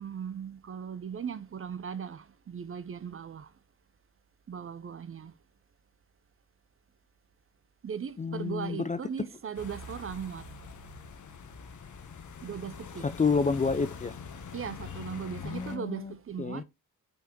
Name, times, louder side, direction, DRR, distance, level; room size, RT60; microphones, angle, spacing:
voice 1, 0.0-3.5 4.5-5.3 7.8-10.5 12.4-13.1 14.5-16.6, right 7 dB, 30° right, 0.6 m, -38 dB
voice 2, 8.2-9.0 13.0-14.2 15.4-16.6, left 5 dB, 20° left, 0.5 m, -29 dB
sound 1, 9.5-15.8, left 5 dB, 45° left, 1.1 m, -44 dB
7.1 x 5.6 x 3.0 m
hypercardioid pair, 40°, 42 cm